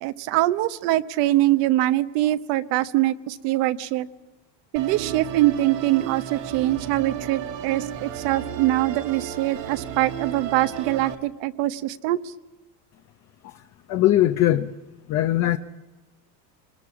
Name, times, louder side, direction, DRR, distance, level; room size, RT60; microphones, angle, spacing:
voice 1, 0.0-4.1 4.7-12.2, right 15 dB, 55° right, 13 dB, 1.0 m, -23 dB
Musical instrument, 4.8-11.2, right 9 dB, 70° right, 2.6 m, -34 dB
voice 2, 13.4-14.8 15.1-15.6, left 13 dB, 30° left, 7 dB, 0.8 m, -21 dB
25.5 x 21.0 x 4.9 m, 1.2 s
supercardioid pair, 125°, 49 cm